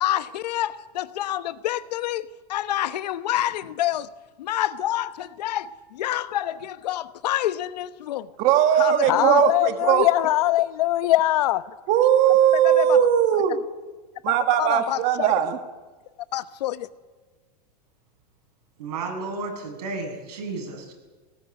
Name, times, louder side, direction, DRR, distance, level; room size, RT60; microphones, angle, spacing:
voice 1, 0.0-4.1 4.4-8.3 8.8-9.4 12.5-13.0 14.6-15.3 16.3-16.9, left 13 dB, 85° left, 1.1 m, -28 dB
voice 2, 8.4-10.1 11.9-13.6 14.2-15.6, right 10 dB, 35° right, 1.5 m, -19 dB
voice 3, 9.0-11.6, left 16 dB, 65° left, 1.0 m, -21 dB
voice 4, 18.8-20.9, right 3 dB, 80° right, 7.4 m, -33 dB
20.5 x 19.0 x 9.5 m
supercardioid pair, 165°, 20 cm